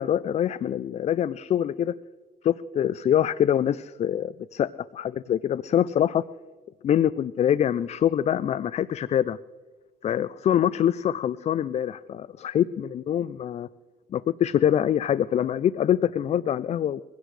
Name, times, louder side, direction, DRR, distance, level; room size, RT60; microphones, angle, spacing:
voice 1, 0.0-1.9 2.4-6.2 6.8-9.4 10.0-13.7 14.1-17.0, left 10 dB, 40° left, 17 dB, 0.4 m, -24 dB
23.0 x 16.5 x 3.3 m, 1.4 s
cardioid pair, 110°, 17 cm